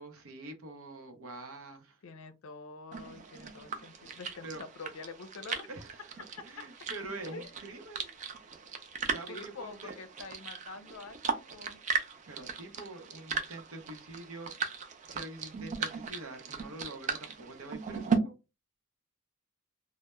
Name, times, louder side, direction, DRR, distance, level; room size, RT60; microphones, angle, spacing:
voice 1, 0.0-2.0 4.4-4.6 5.7-6.2 6.4-8.1 9.0-10.0 12.3-14.5 15.1-18.4, right 2 dB, 80° right, 0.7 m, -45 dB
voice 2, 2.0-5.7 6.6-6.7 7.2-7.5 9.3-11.8, left 4 dB, 80° left, 0.5 m, -46 dB
sound 1, 2.9-18.2, right 5 dB, 35° right, 0.3 m, -38 dB
2.2 x 2.0 x 2.9 m
head